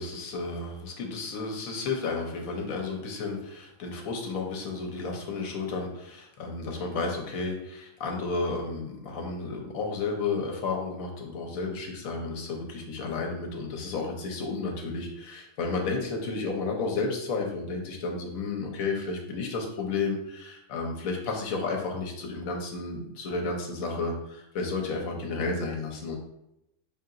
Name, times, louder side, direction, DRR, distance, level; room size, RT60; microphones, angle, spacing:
voice 1, 0.0-26.2, left 3 dB, 80° left, 1 dB, 1.1 m, -32 dB
5.0 x 2.8 x 2.5 m, 0.83 s
omnidirectional pair, 1.4 m